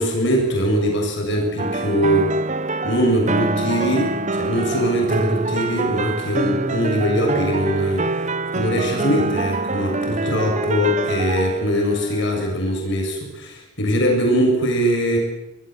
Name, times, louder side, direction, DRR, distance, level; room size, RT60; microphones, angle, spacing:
voice 1, 0.0-2.3 2.8-8.1 8.5-15.2, equal, 60° left, 1 dB, 7.3 m, -21 dB
sound 1, 1.6-12.5, right 3 dB, 35° right, 1.2 m, -25 dB
29.0 x 20.0 x 8.0 m, 0.93 s
head